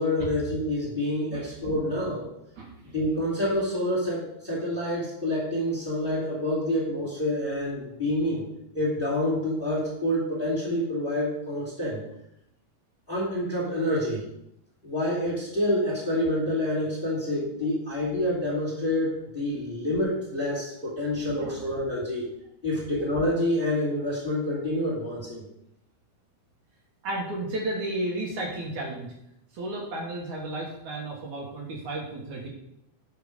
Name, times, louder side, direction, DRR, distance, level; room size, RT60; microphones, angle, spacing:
voice 1, 0.0-2.3 2.9-8.5 8.7-12.0 13.1-14.2 14.8-22.2 22.6-25.4, left 1 dB, 15° left, -5 dB, 2.4 m, -27 dB
voice 2, 2.6-2.9 21.3-21.5 27.0-29.1 29.5-32.5, right 1 dB, 65° right, -1 dB, 2.8 m, -33 dB
8.5 x 5.8 x 5.1 m, 0.80 s
omnidirectional pair, 3.9 m